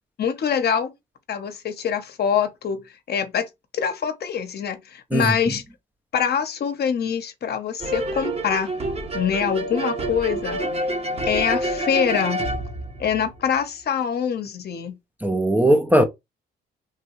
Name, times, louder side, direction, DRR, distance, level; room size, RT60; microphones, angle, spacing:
voice 1, 0.2-0.9 1.3-3.5 3.7-5.6 6.1-8.7 9.1-10.7 11.2-12.4 13.0-15.0, left 7 dB, 55° left, 0.7 m, -24 dB
sound 1, 7.8-13.6, right 1 dB, 30° right, 0.7 m, -28 dB
voice 2, 15.2-16.0, right 1 dB, 10° right, 0.4 m, -18 dB
3.3 x 2.3 x 2.9 m
cardioid pair, 90°, 20 cm